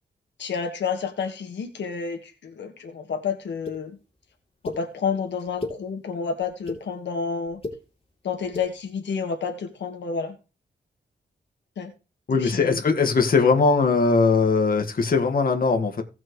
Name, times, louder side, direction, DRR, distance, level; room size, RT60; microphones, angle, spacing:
voice 1, 0.4-3.9 4.6-7.6 8.2-10.4 11.8-11.9 12.4-12.8, left 5 dB, 85° left, 1.7 m, -30 dB
sound 1, 3.7-3.8 4.6-4.8 5.4-5.8 6.4-6.8 7.5-7.8 8.4-8.7, left 2 dB, 35° left, 3.1 m, -32 dB
voice 2, 12.3-16.0, left 4 dB, 55° left, 1.8 m, -20 dB
17.5 x 5.9 x 3.2 m
cardioid pair, 90°, 18 cm